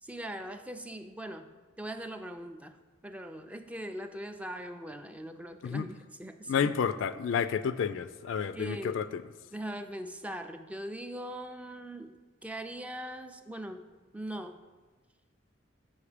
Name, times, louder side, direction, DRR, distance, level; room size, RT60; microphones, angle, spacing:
voice 1, 0.0-2.8 3.0-6.7 8.5-9.0 9.5-13.9 14.1-14.6, right 1 dB, 5° right, 7 dB, 0.3 m, -41 dB
voice 2, 6.5-9.2, left 7 dB, 80° left, 13 dB, 0.3 m, -30 dB
7.1 x 5.1 x 4.9 m, 1.3 s
head